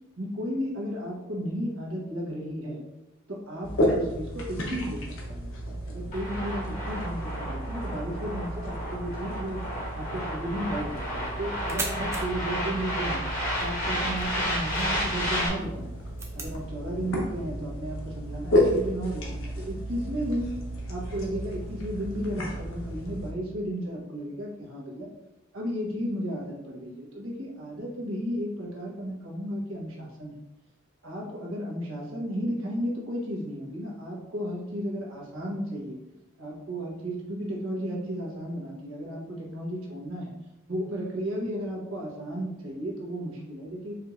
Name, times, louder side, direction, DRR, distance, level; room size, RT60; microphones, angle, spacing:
voice 1, 0.2-2.8 3.3-13.2 13.6-15.9 16.3-20.5 20.9-25.1 25.5-30.3 31.0-36.0 36.4-40.3 40.7-43.9, equal, 75° right, -3 dB, 1.1 m, -34 dB
sound 1, 3.6-23.3, equal, 75° left, 0.8 m, -32 dB
sound 2, 6.1-15.5, equal, 40° left, 0.9 m, -32 dB
sound 3, 10.8-16.6, right 2 dB, 15° right, 0.4 m, -41 dB
4.7 x 3.1 x 2.4 m, 0.93 s
head